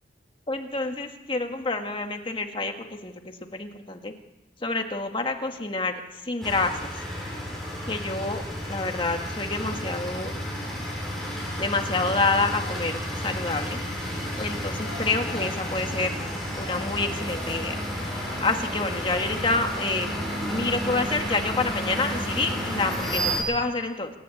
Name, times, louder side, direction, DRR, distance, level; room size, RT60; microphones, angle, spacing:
voice 1, 0.5-4.1 4.6-6.9 7.9-8.4 8.7-10.4 11.6-13.8 14.4-16.2 16.6-20.1 20.5-24.1, left 3 dB, 30° left, 4 dB, 1.7 m, -28 dB
sound 1, 6.4-23.4, equal, ahead, 7.3 m, -31 dB
28.0 x 11.0 x 8.6 m, 0.99 s
head